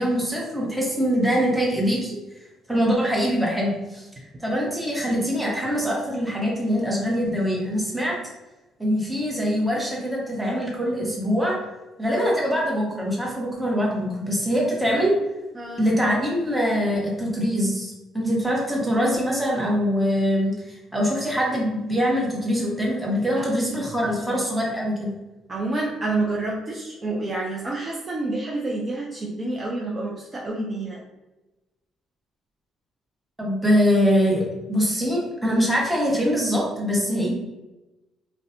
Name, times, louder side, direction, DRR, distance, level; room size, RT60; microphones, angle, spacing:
voice 1, 0.0-2.2 2.7-4.1 4.4-8.2 8.8-11.6 12.0-15.1 15.8-25.1 33.4-37.3, equal, 10° right, -3 dB, 0.9 m, -23 dB
voice 2, 23.4-23.8 24.0-24.2 25.5-31.0, right 2 dB, 30° right, -3 dB, 0.4 m, -28 dB
2.5 x 2.1 x 2.7 m, 1.0 s
supercardioid pair, 80°, 0 cm